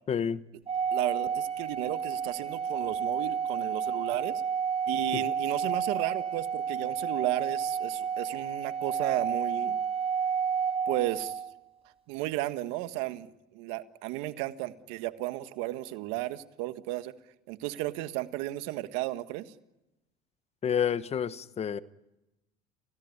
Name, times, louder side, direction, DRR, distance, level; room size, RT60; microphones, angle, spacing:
voice 1, 0.1-0.4 5.1-5.2 20.6-21.8, left 8 dB, 35° left, 1.1 m, -29 dB
Organ, 0.7-11.5, right 7 dB, 30° right, 4.5 m, -31 dB
voice 2, 0.9-4.4 4.9-9.8 10.9-11.4 12.1-17.1 17.5-19.5, right 16 dB, 75° right, 1.6 m, -34 dB
28.5 x 17.0 x 9.6 m
supercardioid pair, 95°, 19 cm